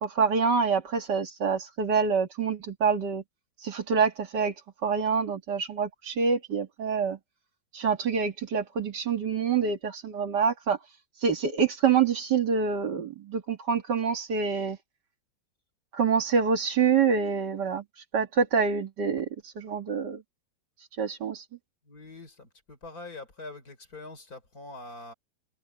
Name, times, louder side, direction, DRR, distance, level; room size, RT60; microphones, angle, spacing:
voice 1, 0.0-3.2 3.6-4.5 4.8-7.2 7.7-10.8 11.2-14.8 15.9-17.8 18.1-19.3 19.6-20.2 21.0-21.4, right 6 dB, 70° right, 2.4 m, -26 dB
voice 2, 21.8-25.1, left 2 dB, 55° left, 4.6 m, -44 dB
omnidirectional pair, 1.9 m